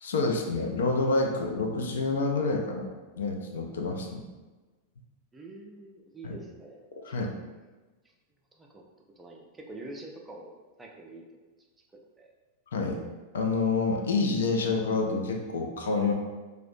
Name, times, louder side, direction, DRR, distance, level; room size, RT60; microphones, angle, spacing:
voice 1, 0.0-4.2 6.2-6.4 7.0-7.3 12.7-13.0 13.3-16.1, left 3 dB, 65° left, 1 dB, 0.3 m, -28 dB
voice 2, 5.3-7.3 8.6-8.8 9.1-10.5 10.8-11.2 11.9-12.3, right 2 dB, 15° right, 0 dB, 0.3 m, -46 dB
2.4 x 2.1 x 2.4 m, 1.2 s
figure-of-eight pair, 90°, 0 cm